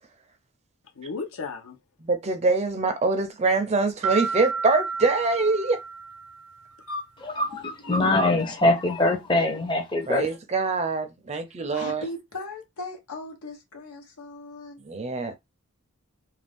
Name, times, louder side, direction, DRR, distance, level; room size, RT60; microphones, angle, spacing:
voice 1, 1.0-1.8 6.8-7.0 7.3-8.0 8.4-9.0, left 4 dB, 70° left, 0.7 m, -37 dB
voice 2, 2.0-5.8 10.1-12.0 14.9-15.4, right 3 dB, 30° right, 0.4 m, -24 dB
sound 1, 4.0-6.7, right 5 dB, 80° right, 0.6 m, -31 dB
voice 3, 7.2-10.2, left 2 dB, 20° left, 0.6 m, -23 dB
voice 4, 11.7-14.8, left 2 dB, 85° left, 1.1 m, -38 dB
2.5 x 2.3 x 3.4 m
head